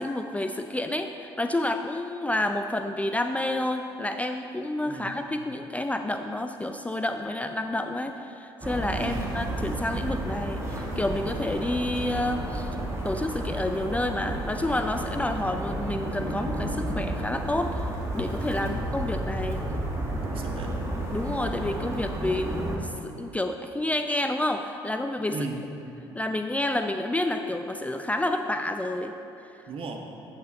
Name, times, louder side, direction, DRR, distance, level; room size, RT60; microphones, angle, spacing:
voice 1, 0.0-12.7 13.0-19.6 21.1-25.4 26.2-29.1, left 1 dB, 10° left, 6 dB, 0.5 m, -29 dB
voice 2, 4.9-5.2 9.0-9.3 15.2-15.3 18.6-18.9 19.6-19.8 20.2-20.8 25.3-25.7 29.7-30.1, right 3 dB, 45° right, 3 dB, 1.2 m, -37 dB
sound 1, 8.6-22.8, right 1 dB, 20° right, 2.0 m, -32 dB
8.8 x 8.2 x 4.2 m, 2.9 s
figure-of-eight pair, 50°, 13 cm